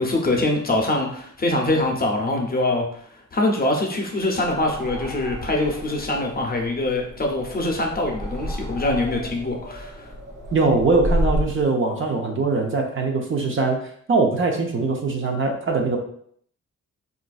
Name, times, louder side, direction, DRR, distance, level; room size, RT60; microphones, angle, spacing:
voice 1, 0.0-2.9 3.3-10.1, left 2 dB, 30° left, 1 dB, 0.6 m, -23 dB
sound 1, 4.3-11.6, equal, 70° right, 1.0 m, -31 dB
voice 2, 10.5-13.8 14.1-16.0, right 3 dB, 40° right, 2 dB, 0.5 m, -21 dB
3.9 x 2.5 x 2.3 m, 0.63 s
wide cardioid pair, 110°, 30 cm